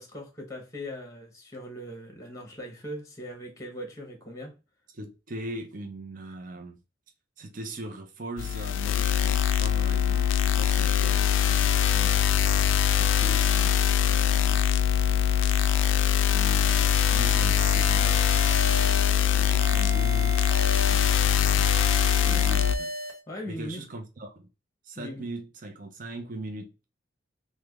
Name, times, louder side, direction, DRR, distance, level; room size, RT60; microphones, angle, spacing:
voice 1, 0.0-4.5 10.8-11.1 22.2-22.5 23.3-23.8 25.0-25.3, equal, 15° left, 0.8 m, -40 dB
voice 2, 4.9-6.8 7.4-12.2 12.9-14.7 16.3-18.3 19.3-20.4 20.9-21.8 22.2-22.9 23.5-24.5 24.8-26.8, right 1 dB, 45° right, 0.5 m, -40 dB
sound 1, 8.4-22.7, left 9 dB, 70° left, 0.3 m, -23 dB
sound 2, 17.6-19.2 19.6-21.2 21.6-23.2, right 1 dB, 90° right, 1.0 m, -36 dB
3.2 x 2.1 x 3.4 m
head